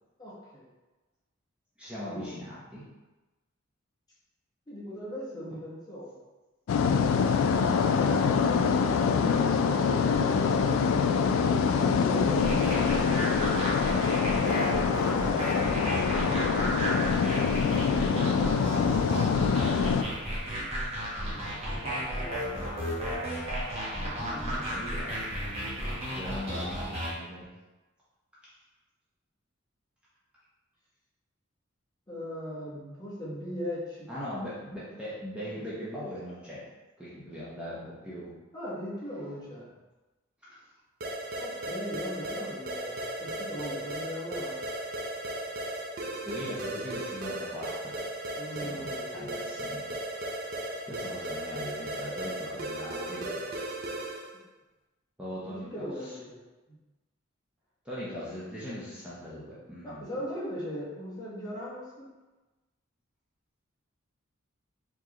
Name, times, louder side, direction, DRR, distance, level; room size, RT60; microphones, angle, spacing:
voice 1, 0.2-0.6 2.1-2.3 4.7-6.1 11.4-13.3 21.3-22.6 23.9-24.7 26.4-26.7 32.1-34.4 38.5-39.7 41.4-44.6 48.4-49.5 55.4-56.4 56.7-56.8 59.8-62.1, equal, 20° left, -7 dB, 1.1 m, -39 dB
voice 2, 1.8-2.8 15.1-16.4 24.2-25.2 26.1-27.5 34.1-36.6 37.0-38.3 46.2-47.9 48.5-49.9 50.6-53.4 55.2-56.1 57.8-60.0, equal, 5° right, -10 dB, 0.8 m, -40 dB
sound 1, 6.7-20.0, left 6 dB, 80° left, 0.3 m, -25 dB
sound 2, 12.4-27.1, equal, 30° right, 1.0 m, -33 dB
sound 3, 41.0-54.3, right 1 dB, 45° right, 0.5 m, -36 dB
4.6 x 3.0 x 2.9 m, 1.1 s
head